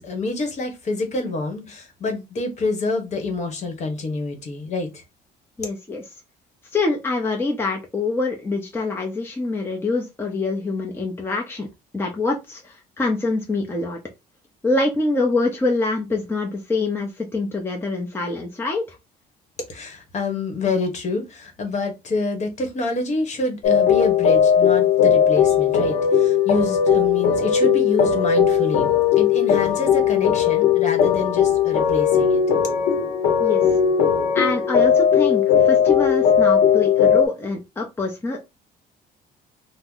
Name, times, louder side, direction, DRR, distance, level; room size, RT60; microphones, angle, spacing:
voice 1, 0.0-5.0 19.7-32.4, left 3 dB, 45° left, 1.1 m, -27 dB
voice 2, 5.6-6.0 6.7-11.7 11.9-14.0 14.6-18.8 33.4-33.7 34.3-38.4, left 3 dB, 15° left, 0.7 m, -25 dB
sound 1, 23.6-37.3, left 8 dB, 85° left, 0.8 m, -18 dB
2.8 x 2.1 x 3.6 m
cardioid pair, 110°, 17 cm